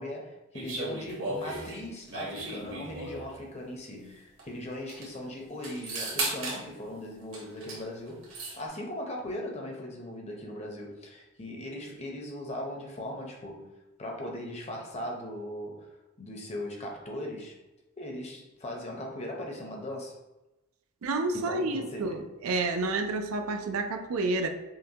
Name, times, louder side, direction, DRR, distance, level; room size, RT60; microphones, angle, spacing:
voice 1, 0.0-13.7 14.0-17.5 18.0-20.2 21.3-22.3, left 1 dB, 30° left, 0 dB, 0.7 m, -39 dB
sound 1, 0.5-3.3 4.4-4.5 4.7-5.1 5.6-6.6 7.3-7.8 8.1-8.6, right 2 dB, 65° right, 1.1 m, -35 dB
voice 2, 21.0-24.5, right 3 dB, 80° right, 6 dB, 0.4 m, -29 dB
5.5 x 2.2 x 2.7 m, 1.0 s
head